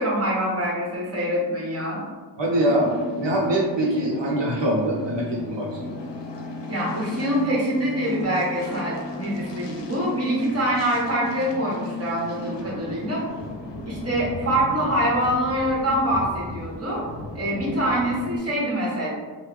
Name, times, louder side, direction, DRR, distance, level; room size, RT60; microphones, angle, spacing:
voice 1, 0.0-2.0 6.7-13.2 13.9-17.0 17.3-19.1, equal, 35° right, -5 dB, 1.1 m, -25 dB
voice 2, 2.4-6.0, right 1 dB, 80° right, -3 dB, 0.6 m, -23 dB
sound 1, 2.6-18.4, left 1 dB, 75° left, 0.6 m, -35 dB
3.0 x 2.1 x 3.3 m, 1.4 s
wide cardioid pair, 45°, 43 cm